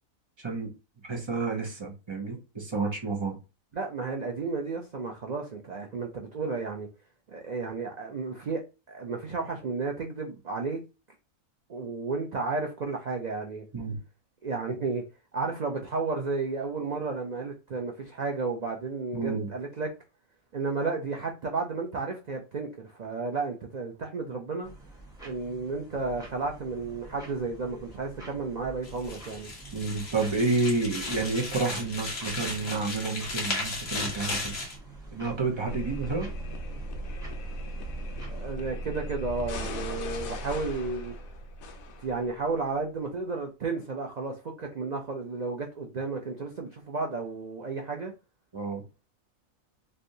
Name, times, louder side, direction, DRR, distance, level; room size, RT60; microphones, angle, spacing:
voice 1, 0.4-0.7 1.1-3.4 13.7-14.0 19.1-19.5 29.7-34.5 35.1-36.3 48.5-48.8, right 3 dB, 25° right, 0.8 m, -30 dB
voice 2, 3.7-6.9 7.3-8.6 8.9-10.8 11.7-13.6 14.4-15.0 15.3-19.9 20.5-24.7 25.2-29.5 38.3-41.1 42.0-48.1, right 4 dB, 85° right, 0.3 m, -32 dB
sound 1, 24.6-38.5, right 2 dB, 5° right, 1.0 m, -47 dB
sound 2, 28.8-34.8, left 2 dB, 50° left, 1.2 m, -35 dB
sound 3, 35.7-42.5, equal, 80° left, 1.1 m, -37 dB
3.3 x 2.6 x 2.6 m
omnidirectional pair, 1.5 m